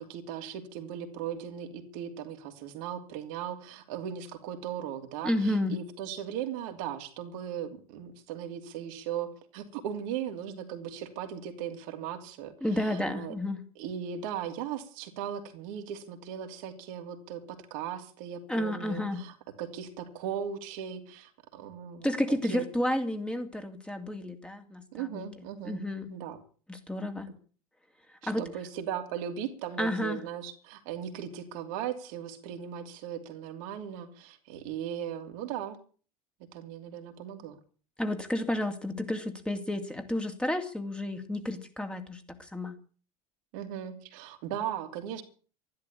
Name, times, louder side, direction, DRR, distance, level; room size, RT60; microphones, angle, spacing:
voice 1, 0.0-13.3 13.7-22.6 24.9-25.8 26.1-26.4 28.2-35.8 36.5-37.6 43.5-45.2, right 9 dB, 60° right, 5 dB, 2.9 m, -38 dB
voice 2, 5.2-5.8 12.6-13.6 18.5-19.2 22.0-25.2 25.6-26.1 26.7-27.3 28.2-28.4 29.8-30.2 38.0-42.8, left 1 dB, 5° left, 5 dB, 2.8 m, -31 dB
13.0 x 12.0 x 8.7 m, 0.41 s
figure-of-eight pair, 75°, 19 cm